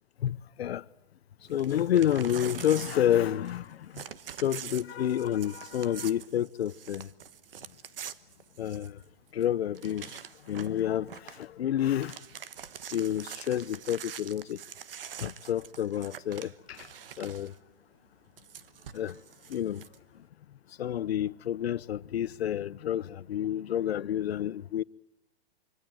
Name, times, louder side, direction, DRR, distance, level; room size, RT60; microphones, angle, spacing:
voice 1, 0.2-0.8 1.5-4.0 4.4-7.1 8.6-9.0 9.3-10.2 10.5-12.2 12.9-14.6 15.2-16.9 17.2-17.5 18.9-19.2 19.5-19.8 20.8-24.8, left 11 dB, 90° left, 0.9 m, -29 dB
Crumpling crinkling / Tearing, 1.5-3.7 3.9-9.0 9.4-9.5 9.7-10.8 11.1-11.4 11.8-17.6 18.4-20.0, right 9 dB, 65° right, 1.2 m, -44 dB
25.0 x 25.0 x 7.7 m
hypercardioid pair, 180°, 30 cm